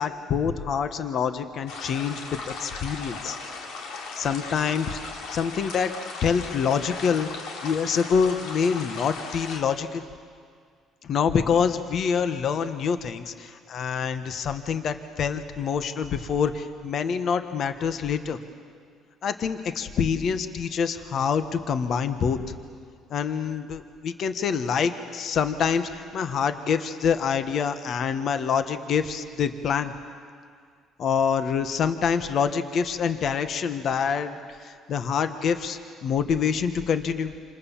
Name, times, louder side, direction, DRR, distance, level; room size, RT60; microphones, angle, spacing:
voice 1, 0.0-3.4 4.1-5.0 5.3-5.9 6.2-7.3 7.6-10.0 11.0-18.4 19.2-22.5 23.1-29.9 31.0-37.3, left 6 dB, 45° left, 9 dB, 1.3 m, -26 dB
sound 1, 1.7-9.6, left 4 dB, 80° left, 3.6 m, -37 dB
28.0 x 28.0 x 7.3 m, 2.1 s
cardioid pair, 145°, 0 cm